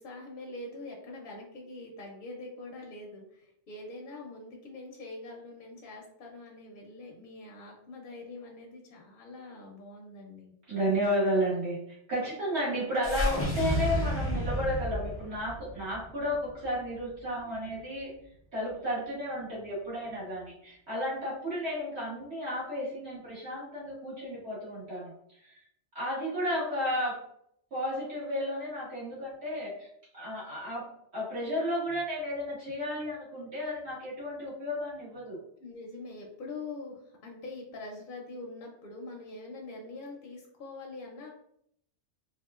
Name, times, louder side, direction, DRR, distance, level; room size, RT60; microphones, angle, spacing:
voice 1, 0.0-10.5 12.8-12.9 35.6-41.3, left 2 dB, 55° left, -1 dB, 0.7 m, -44 dB
voice 2, 10.7-18.1 18.5-25.1 25.4-25.5 26.0-27.2 27.7-29.9 30.1-30.8 31.1-35.4, equal, 65° right, -8 dB, 1.9 m, -32 dB
sound 1, 13.0-17.3, equal, 15° left, 0.5 m, -32 dB
3.5 x 2.4 x 2.3 m, 0.71 s
omnidirectional pair, 1.2 m